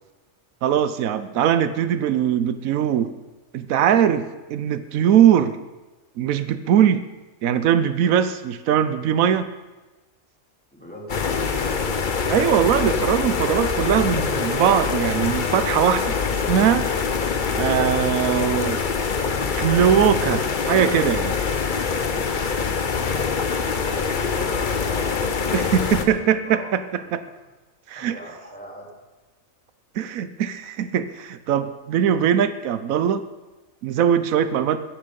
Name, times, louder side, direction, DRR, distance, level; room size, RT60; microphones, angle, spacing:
voice 1, 0.6-3.1 3.5-5.6 6.2-7.0 7.4-9.5 12.2-16.9 17.6-18.8 19.6-21.3 25.5-27.2 27.9-28.2 30.0-33.2 33.8-34.8, right 9 dB, 85° right, 12 dB, 1.1 m, -21 dB
voice 2, 10.7-11.4 22.5-23.0 23.8-26.2 26.4-26.7 27.0-27.1 27.9-28.9, equal, 5° left, -3 dB, 2.9 m, -40 dB
sound 1, 11.1-26.1, left 5 dB, 40° left, 0.9 m, -24 dB
14.5 x 10.0 x 5.2 m, 1.2 s
omnidirectional pair, 1.4 m